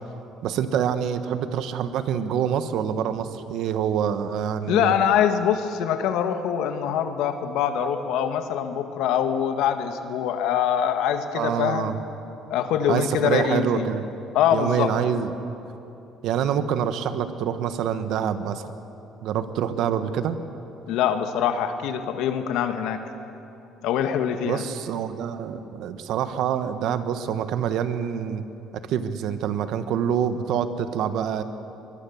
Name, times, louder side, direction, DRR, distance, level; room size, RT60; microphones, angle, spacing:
voice 1, 0.4-5.0 11.3-12.0 12.9-14.0 14.5-15.3 16.2-18.7 19.2-20.4 24.4-28.4 28.7-31.4, right 8 dB, 70° right, 10 dB, 1.4 m, -26 dB
voice 2, 4.7-11.9 12.5-13.9 14.3-14.9 20.9-23.0 23.8-24.6, left 9 dB, 80° left, 7 dB, 1.7 m, -24 dB
23.5 x 21.5 x 7.2 m, 2.8 s
cardioid pair, 135°, 0 cm